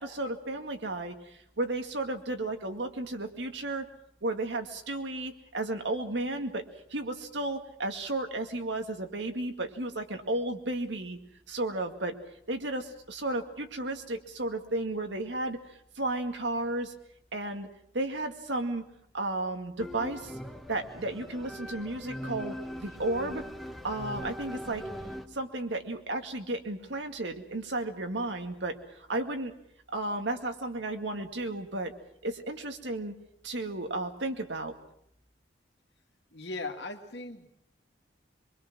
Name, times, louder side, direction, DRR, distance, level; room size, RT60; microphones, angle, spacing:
voice 1, 0.0-3.9 4.2-6.7 6.9-11.2 11.5-12.2 12.5-16.9 17.3-17.7 17.9-18.9 19.1-20.4 20.7-23.5 23.8-24.8 25.3-29.5 29.9-31.9 32.2-33.1 33.4-34.7, right 2 dB, 80° right, 5 dB, 2.2 m, -33 dB
sound 1, 19.8-25.3, equal, ahead, 1.3 m, -41 dB
voice 2, 36.3-37.5, left 2 dB, 70° left, 4 dB, 2.3 m, -38 dB
24.5 x 23.0 x 6.1 m, 0.72 s
head